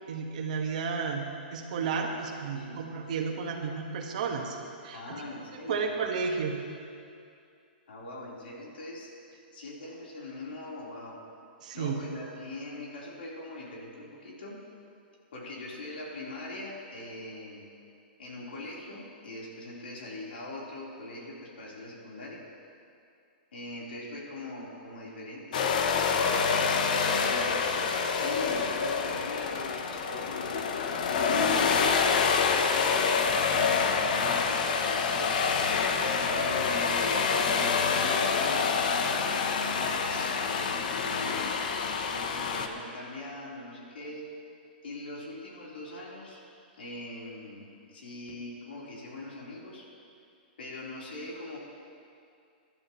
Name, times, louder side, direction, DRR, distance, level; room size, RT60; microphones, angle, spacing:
voice 1, 0.1-1.2 1.5-4.6 4.8-5.2 5.7-6.6 11.6-11.9, right 5 dB, 45° right, 2 dB, 1.5 m, -32 dB
voice 2, 4.9-6.0 7.9-9.1 9.5-11.2 11.7-14.6 15.3-17.7 18.2-22.5 23.5-25.7 26.8-30.6 31.1-35.4 36.4-39.5 40.0-41.6 42.1-44.3 44.8-46.4 46.8-49.9 50.6-51.6, left 2 dB, 85° left, -4 dB, 4.0 m, -42 dB
sound 1, 25.5-42.7, left 5 dB, 50° left, 0.9 m, -27 dB
22.0 x 12.0 x 3.2 m, 2.5 s
hypercardioid pair, 175°, 6 cm